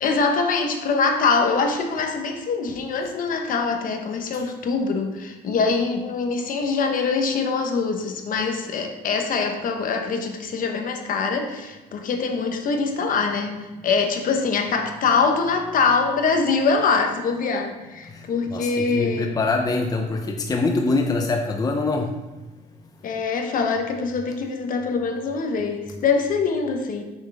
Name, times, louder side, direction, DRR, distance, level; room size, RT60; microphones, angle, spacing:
voice 1, 0.0-19.3 23.0-27.0, left 4 dB, 55° left, 4 dB, 1.1 m, -23 dB
voice 2, 18.1-22.1, left 3 dB, 20° left, 3 dB, 0.7 m, -24 dB
6.4 x 6.0 x 3.5 m, 1.2 s
cardioid pair, 110°, 17 cm